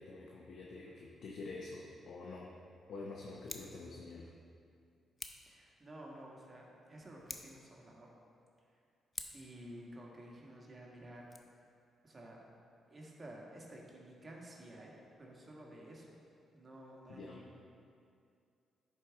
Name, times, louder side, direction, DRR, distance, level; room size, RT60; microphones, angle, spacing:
voice 1, 0.0-2.5 2.9-4.3 17.1-17.4, left 3 dB, 65° left, -2 dB, 0.8 m, -47 dB
Scissors, 3.4-3.8 5.2-5.5 7.2-7.7 9.1-9.5 11.2-11.4, left 2 dB, 30° left, 0.7 m, -46 dB
voice 2, 5.5-8.1 8.7-8.8 9.3-11.2 12.0-12.4 12.9-14.9 15.2-16.2 16.5-17.6, right 1 dB, 35° right, -2 dB, 1.7 m, -52 dB
10.5 x 4.7 x 3.6 m, 2.4 s
supercardioid pair, 55°, 0 cm